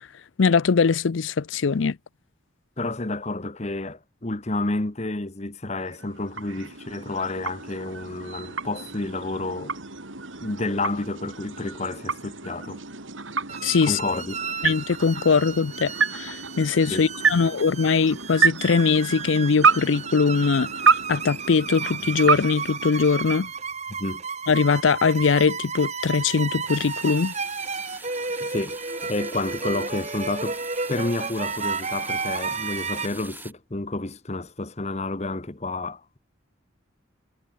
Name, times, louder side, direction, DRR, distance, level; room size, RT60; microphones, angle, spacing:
voice 1, 0.4-2.0 13.6-14.0 14.6-20.7 21.1-23.5 24.5-27.3, left 5 dB, 80° left, 0.5 m, -21 dB
voice 2, 2.8-9.8 10.4-12.8 13.8-14.4 16.9-17.1 24.0-24.2 28.4-30.6 30.9-36.2, left 2 dB, 35° left, 1.2 m, -30 dB
sound 1, 5.8-23.6, right 5 dB, 90° right, 5.5 m, -29 dB
sound 2, 13.5-33.1, right 5 dB, 35° right, 7.3 m, -33 dB
sound 3, 26.6-33.5, right 3 dB, 10° right, 6.7 m, -43 dB
head